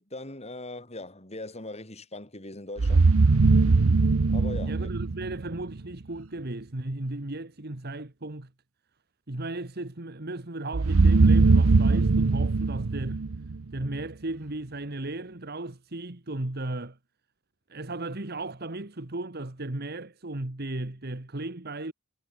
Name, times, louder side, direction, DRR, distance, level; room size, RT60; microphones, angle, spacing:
voice 1, 0.0-3.1 4.3-4.9, left 2 dB, 30° left, 6.6 m, -40 dB
sound 1, 2.8-5.8 10.7-14.0, right 3 dB, 90° right, 0.7 m, -21 dB
voice 2, 4.6-8.5 9.3-13.3 13.7-17.0 17.7-21.9, right 2 dB, 50° right, 1.8 m, -35 dB
head